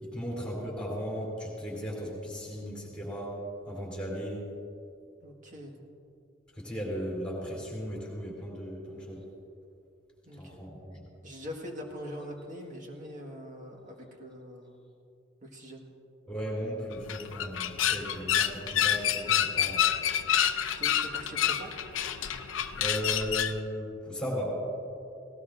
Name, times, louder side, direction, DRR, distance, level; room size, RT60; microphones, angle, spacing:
voice 1, 0.0-3.4 3.7-4.4 6.6-9.3 10.3-11.1 16.3-19.9 22.8-24.6, equal, 5° left, -5 dB, 3.4 m, -36 dB
voice 2, 5.2-5.8 10.2-10.6 11.2-14.8 15.4-15.9 20.8-21.7, equal, 40° right, 1 dB, 1.7 m, -43 dB
sound 1, 16.9-23.6, left 10 dB, 85° left, 0.6 m, -28 dB
sound 2, 17.9-23.0, equal, 60° right, 2.3 m, -49 dB
18.0 x 18.0 x 2.6 m, 2.6 s
head